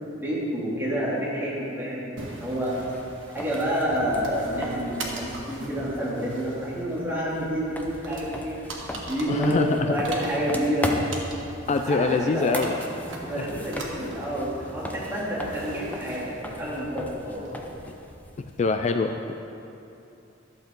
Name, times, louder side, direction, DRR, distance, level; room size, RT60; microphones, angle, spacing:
voice 1, 0.1-2.8 3.3-8.6 9.1-10.9 11.8-12.5 13.1-17.5, equal, 10° right, -8 dB, 2.6 m, -28 dB
sound 1, 2.2-18.0, right 2 dB, 90° right, 1.4 m, -42 dB
sound 2, 2.7-18.8, equal, 10° left, 0.7 m, -38 dB
voice 2, 9.3-10.0 11.7-12.7 13.4-13.5 18.6-19.3, left 4 dB, 35° left, 6 dB, 0.3 m, -24 dB
12.0 x 7.3 x 4.5 m, 2.8 s
head